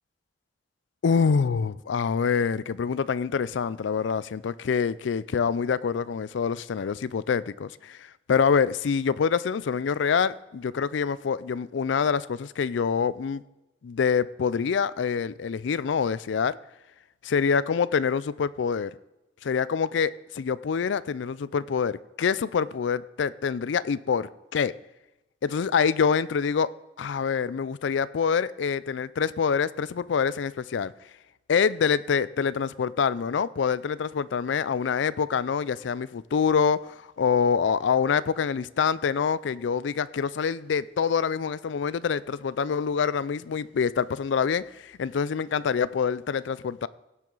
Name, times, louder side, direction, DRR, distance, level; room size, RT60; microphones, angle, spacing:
voice 1, 1.0-13.4 13.8-16.6 17.2-18.9 19.4-24.7 25.4-26.7 27.0-30.9 31.5-46.9, left 6 dB, 75° left, 0.4 m, -26 dB
16.5 x 7.6 x 3.9 m
head